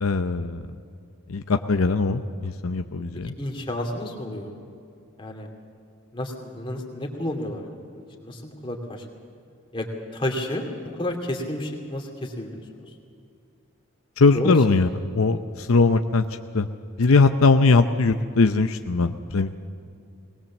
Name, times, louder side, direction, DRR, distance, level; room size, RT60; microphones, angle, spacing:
voice 1, 0.0-0.6 1.3-3.3 14.2-14.9 15.1-16.3 16.5-16.7 17.0-19.6, left 3 dB, 75° left, 8 dB, 0.7 m, -20 dB
voice 2, 3.4-4.5 5.2-5.5 6.1-9.0 9.7-9.9 10.1-12.6 14.3-14.8, left 1 dB, 25° left, 2 dB, 2.5 m, -31 dB
20.0 x 20.0 x 7.3 m, 2.5 s
head